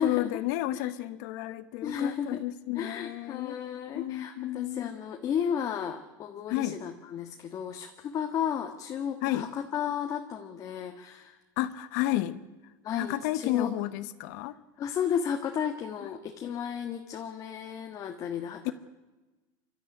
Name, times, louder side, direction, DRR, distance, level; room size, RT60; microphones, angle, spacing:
voice 1, 0.0-3.6 3.9-5.0 6.5-6.8 9.2-9.5 11.6-12.4 13.0-14.6 18.6-18.7, left 15 dB, 65° left, 14 dB, 1.1 m, -31 dB
voice 2, 1.8-2.4 2.7-11.4 12.8-13.7 14.8-18.7, left 8 dB, 35° left, 5 dB, 1.5 m, -33 dB
25.0 x 13.0 x 9.9 m, 1.2 s
supercardioid pair, 140°, 10 cm